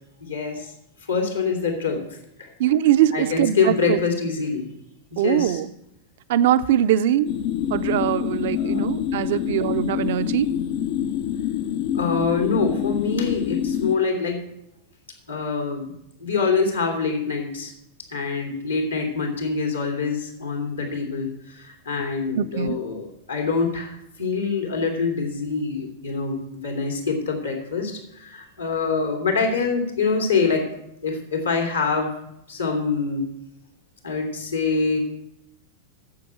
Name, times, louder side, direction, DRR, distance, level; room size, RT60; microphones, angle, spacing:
voice 1, 0.2-0.7 1.1-2.5 3.1-4.7 5.1-5.6 8.5-8.8 11.9-14.4 15.3-15.9 16.2-17.7 18.1-23.9 24.2-30.7 31.0-32.1 32.5-33.3 34.0-35.0, left 4 dB, 80° left, 2 dB, 2.9 m, -25 dB
voice 2, 2.6-4.0 5.2-5.7 6.3-7.3 7.7-10.5 22.4-22.8, right 11 dB, 55° right, 14 dB, 0.6 m, -21 dB
sound 1, 7.3-14.0, left 9 dB, 50° left, 0.6 m, -26 dB
9.6 x 7.7 x 8.0 m, 0.80 s
figure-of-eight pair, 90°, 0 cm